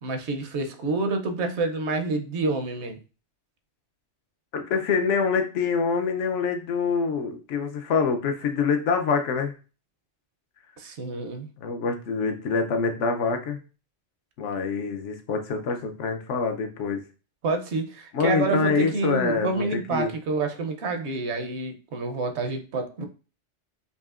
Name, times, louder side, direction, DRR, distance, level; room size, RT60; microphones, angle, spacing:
voice 1, 0.0-3.0 10.8-11.5 17.4-23.0, right 3 dB, 70° right, 7 dB, 0.9 m, -28 dB
voice 2, 4.5-9.5 11.6-13.6 14.4-17.0 18.1-19.6 19.9-20.1, left 5 dB, 75° left, 5 dB, 1.0 m, -25 dB
5.4 x 2.7 x 2.4 m, 0.34 s
omnidirectional pair, 1.2 m